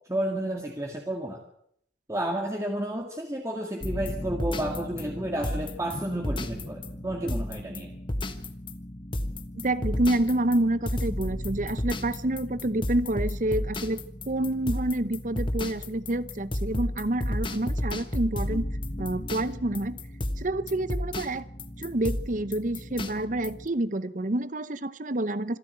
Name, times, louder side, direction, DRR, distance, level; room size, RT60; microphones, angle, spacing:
voice 1, 0.1-1.4 2.1-7.9, right 1 dB, 15° right, 1 dB, 2.0 m, -31 dB
sound 1, 3.8-23.7, left 1 dB, 25° left, 1.4 m, -33 dB
voice 2, 9.6-14.0 14.3-18.7 19.0-20.0 20.4-21.5 21.8-25.6, right 1 dB, 45° right, 15 dB, 0.8 m, -28 dB
26.0 x 11.5 x 9.0 m, 0.72 s
head